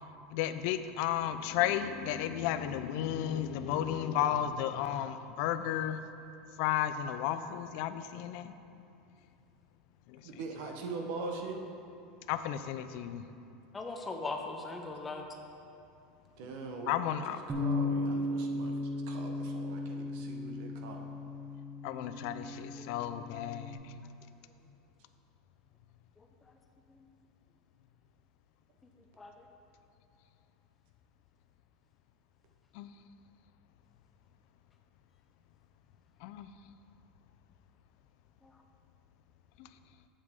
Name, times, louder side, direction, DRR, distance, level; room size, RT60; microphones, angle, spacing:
voice 1, 0.3-6.0 6.6-8.5 10.1-10.2 12.3-13.3 16.9-17.4 21.8-23.9 32.7-32.9 36.2-36.5 39.6-39.7, left 11 dB, 55° left, 11 dB, 0.4 m, -33 dB
voice 2, 10.2-11.6 16.4-18.7 19.1-21.1, right 3 dB, 60° right, 3 dB, 0.9 m, -42 dB
voice 3, 13.7-15.3 22.8-22.9 26.2-26.3 26.9-27.0 29.2-29.4 38.4-38.6, left 3 dB, 10° left, 3 dB, 0.6 m, -40 dB
Bass guitar, 17.5-23.7, left 2 dB, 20° right, 1.0 m, -36 dB
8.2 x 7.3 x 3.6 m, 2.6 s
supercardioid pair, 155°, 0 cm